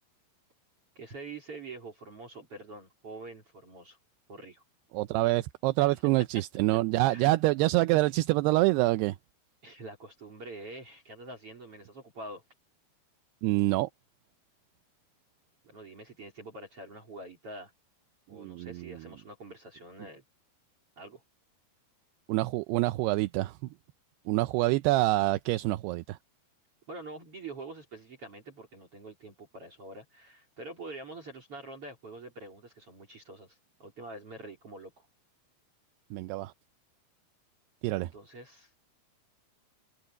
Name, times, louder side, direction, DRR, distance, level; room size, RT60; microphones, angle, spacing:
voice 1, 1.0-4.0 4.3-4.6 5.8-6.0 7.0-7.3 9.6-12.4 15.6-17.7 18.3-20.2 21.0-21.2 26.9-35.1 37.8-38.7, right 2 dB, 35° right, 4.2 m, -45 dB
voice 2, 4.9-9.2 13.4-13.9 18.3-19.0 22.3-23.6 24.3-26.2 36.1-36.5 37.8-38.1, right 19 dB, 85° right, 2.7 m, -26 dB
open air
omnidirectional pair, 4.7 m